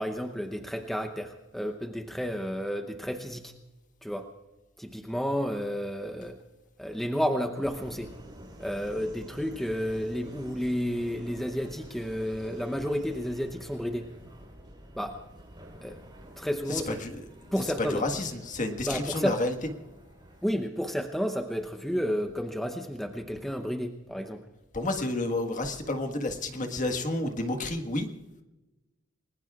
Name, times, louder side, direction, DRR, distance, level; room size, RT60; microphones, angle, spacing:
voice 1, 0.0-3.5 4.0-4.3 4.8-6.4 6.8-8.1 8.6-14.1 15.0-15.2 15.8-16.0 16.4-17.0 17.5-18.0 18.9-19.4 20.4-24.4, equal, ahead, 5 dB, 0.8 m, -31 dB
Subway metro underground, 7.6-20.4, equal, 25° right, 4.2 m, -49 dB
voice 2, 16.7-17.2 17.5-19.5 24.7-28.1, left 2 dB, 40° left, 5 dB, 1.6 m, -30 dB
29.0 x 20.5 x 2.4 m, 1.1 s
head